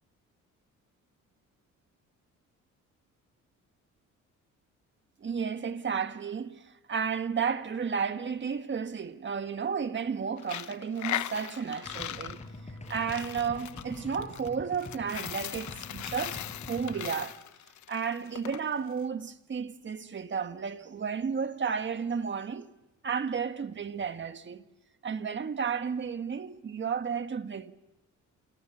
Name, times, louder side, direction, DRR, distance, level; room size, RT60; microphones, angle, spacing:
voice 1, 5.2-12.4 12.9-16.4 16.7-17.4 17.9-22.7 23.0-24.6 25.0-27.7, right 6 dB, 40° right, 1.6 m, -32 dB
Coin (dropping), 10.4-18.6, left 12 dB, 70° left, 1.1 m, -39 dB
sound 1, 11.8-17.0, left 2 dB, 20° left, 7.1 m, -45 dB
29.0 x 27.5 x 7.4 m
cardioid pair, 90°, 30 cm